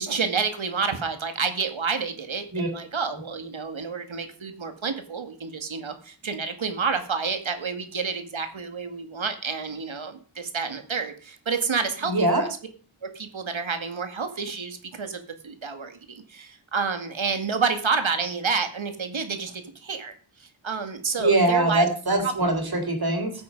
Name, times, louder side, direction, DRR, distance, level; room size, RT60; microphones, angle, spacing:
voice 1, 0.0-12.5 13.1-20.1 20.4-21.9 22.2-22.6, right 5 dB, 75° right, 8 dB, 2.2 m, -29 dB
voice 2, 12.0-12.4 21.2-23.3, right 2 dB, 50° right, 4 dB, 4.1 m, -22 dB
15.0 x 8.5 x 5.4 m, 0.41 s
wide cardioid pair, 75°, 47 cm